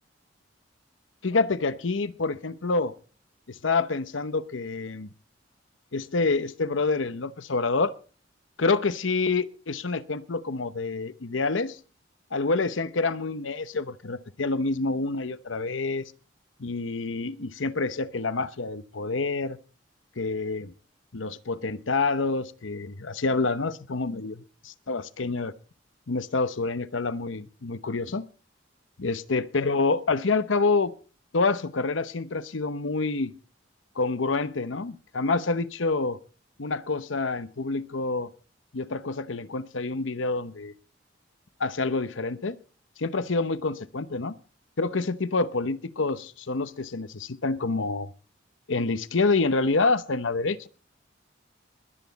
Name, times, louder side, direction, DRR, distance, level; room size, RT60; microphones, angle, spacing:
voice 1, 1.2-2.9 3.5-5.1 5.9-7.9 8.6-11.8 12.3-16.0 16.6-19.6 20.2-20.7 21.1-25.5 26.1-28.3 29.0-30.9 31.3-33.3 34.0-36.2 36.6-38.3 38.7-40.7 41.6-42.6 43.0-44.3 44.8-48.1 48.7-50.7, left 3 dB, 90° left, 0.9 m, -27 dB
21.5 x 9.4 x 4.1 m
head